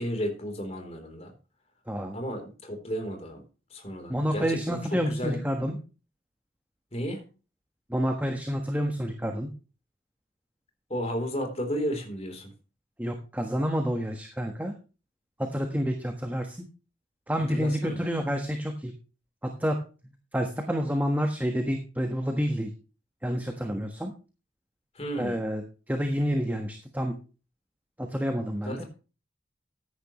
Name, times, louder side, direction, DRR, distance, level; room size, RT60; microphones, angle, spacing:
voice 1, 0.0-1.3 2.1-3.4 3.7-4.8 5.1-5.4 6.9-7.2 10.9-12.5 17.5-18.0 25.0-25.4 28.7-28.8, equal, 35° left, 4 dB, 3.6 m, -33 dB
voice 2, 1.9-2.2 4.1-5.8 7.9-9.5 13.0-14.7 15.4-16.7 17.3-18.9 19.4-19.8 20.3-22.7 23.2-24.1 25.2-27.2 28.0-28.8, equal, 10° right, 4 dB, 1.3 m, -29 dB
14.5 x 10.5 x 3.1 m, 0.34 s
head